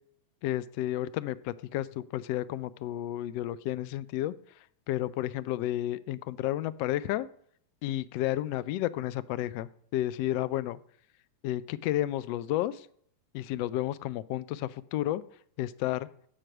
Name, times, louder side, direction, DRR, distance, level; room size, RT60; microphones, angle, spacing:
voice 1, 0.4-4.3 4.9-7.3 7.8-10.8 11.4-12.9 13.3-15.2 15.6-16.1, left 14 dB, 45° left, 16 dB, 0.3 m, -31 dB
7.4 x 4.5 x 4.8 m, 0.63 s
figure-of-eight pair, 90°, 0 cm